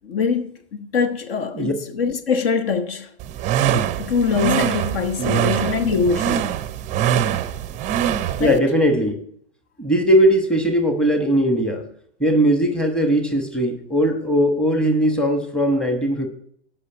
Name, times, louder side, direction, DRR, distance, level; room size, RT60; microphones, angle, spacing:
voice 1, 0.0-3.1 3.7-6.5 8.4-8.6, left 5 dB, 60° left, 1.0 m, -23 dB
sound 1, 3.2-8.6, right 10 dB, 20° right, 0.5 m, -23 dB
voice 2, 5.2-5.5 8.4-9.2 9.8-11.8 12.2-16.3, equal, 5° left, 1.2 m, -19 dB
8.3 x 5.6 x 6.9 m
hypercardioid pair, 115°, 34 cm